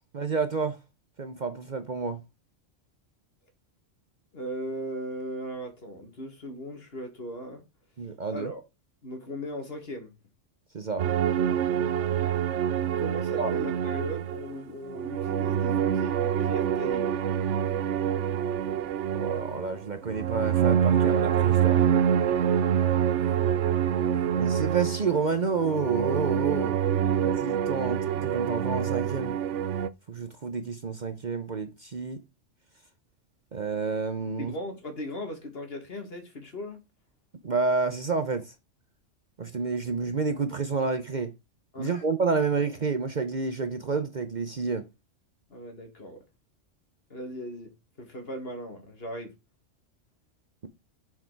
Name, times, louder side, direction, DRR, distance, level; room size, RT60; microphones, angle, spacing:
voice 1, 0.1-0.8 1.2-2.2 8.0-8.5 10.7-11.1 13.4-13.5 19.1-21.8 24.3-26.7 27.2-29.4 30.1-32.2 33.5-34.5 37.4-38.5 39.4-41.3 41.8-44.9, right 4 dB, 45° right, 0.8 m, -29 dB
voice 2, 4.3-7.6 8.3-8.6 9.0-10.1 13.0-17.2 22.9-23.2 23.5-24.5 27.0-27.2 34.4-36.8 41.7-42.0 45.5-46.2 47.1-47.7 48.0-49.3, equal, 50° left, 2.2 m, -38 dB
sound 1, 11.0-14.5 14.9-29.9, right 9 dB, 75° right, 0.9 m, -26 dB
6.8 x 6.1 x 4.6 m
omnidirectional pair, 1.3 m